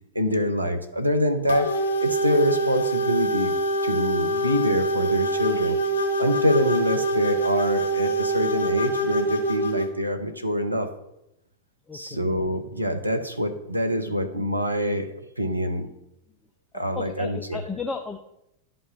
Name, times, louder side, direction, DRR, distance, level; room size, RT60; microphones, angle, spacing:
voice 1, 0.1-3.5 3.8-5.8 6.2-10.9 11.9-15.9 16.7-17.6, equal, 90° right, 6 dB, 0.7 m, -25 dB
sound 1, 1.5-9.9, right 2 dB, 65° left, 1.1 m, -25 dB
voice 2, 11.9-12.2 17.0-18.2, left 4 dB, 15° left, 5 dB, 0.5 m, -34 dB
11.0 x 5.5 x 4.0 m, 0.86 s
figure-of-eight pair, 90°, 0 cm